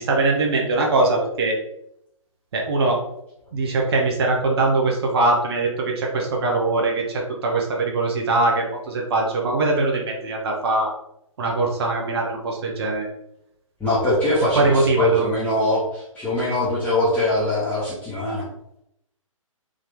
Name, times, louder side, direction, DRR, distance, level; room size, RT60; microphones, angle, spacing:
voice 1, 0.0-1.6 2.5-3.0 3.5-10.9 11.4-13.1 14.6-15.3, right 2 dB, 45° right, 0 dB, 0.8 m, -22 dB
voice 2, 13.8-18.5, left 1 dB, 5° left, -11 dB, 0.9 m, -22 dB
3.6 x 2.7 x 3.3 m, 0.80 s
figure-of-eight pair, 130°, 18 cm